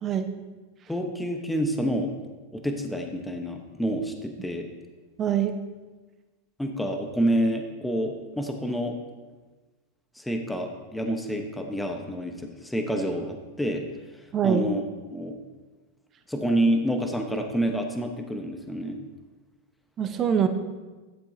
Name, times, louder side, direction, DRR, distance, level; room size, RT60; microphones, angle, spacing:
voice 1, 0.9-2.1 2.5-4.7 6.6-9.0 10.2-13.8 14.4-14.8 15.1-15.3 16.3-19.0, equal, 5° left, 4 dB, 1.1 m, -28 dB
voice 2, 5.2-5.5 14.3-14.6 20.0-20.5, right 8 dB, 30° right, 7 dB, 0.9 m, -23 dB
12.0 x 7.3 x 2.8 m, 1.3 s
hypercardioid pair, 110°, 0 cm